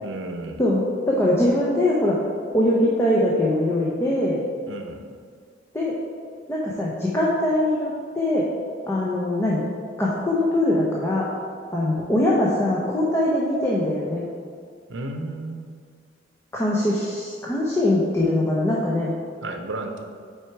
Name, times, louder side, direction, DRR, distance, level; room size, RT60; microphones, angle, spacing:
voice 1, 0.0-0.6 4.7-5.0 14.9-15.7 19.4-20.0, right 2 dB, 80° right, 5 dB, 0.7 m, -33 dB
voice 2, 0.6-2.2 2.5-4.4 5.7-6.0 6.5-8.5 8.9-9.6 10.0-11.3 11.7-14.2 16.5-19.1, left 1 dB, 15° left, -5 dB, 0.7 m, -22 dB
6.1 x 4.7 x 4.6 m, 2.1 s
head